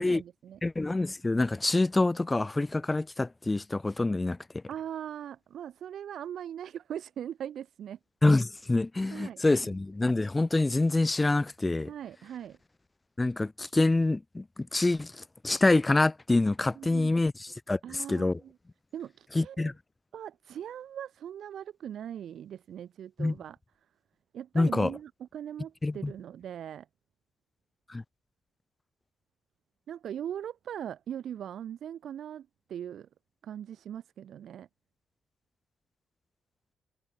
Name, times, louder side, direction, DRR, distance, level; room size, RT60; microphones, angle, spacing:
voice 1, 0.0-0.6 4.7-8.0 9.1-9.8 11.9-12.6 16.7-17.1 17.8-18.6 18.9-19.7 20.1-23.6 24.3-26.9 29.9-33.1 33.4-34.7, right 9 dB, 65° right, 4.1 m, -40 dB
voice 2, 0.6-4.4 8.2-11.9 13.2-15.1 15.4-17.3 17.7-18.4 19.3-19.7 23.2-23.3 24.5-24.9 25.8-26.1 27.9-28.0, left 2 dB, 15° left, 0.9 m, -26 dB
cardioid pair, 105°, 0 cm